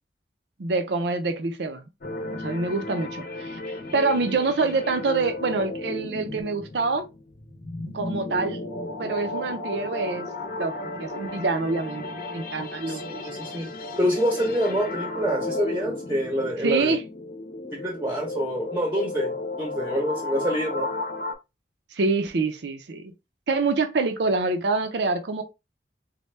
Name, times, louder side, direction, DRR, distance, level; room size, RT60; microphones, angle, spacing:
voice 1, 0.6-1.8 2.3-7.1 7.9-8.6 9.0-10.3 10.6-10.7 11.0-13.2 16.6-17.0 21.9-23.1 23.5-25.4, right 3 dB, 80° right, 0.5 m, -26 dB
sound 1, 2.0-21.3, left 2 dB, 50° left, 0.7 m, -34 dB
voice 2, 12.9-13.7 14.0-17.0 17.7-20.9, equal, 10° right, 0.7 m, -26 dB
4.1 x 2.2 x 3.2 m
head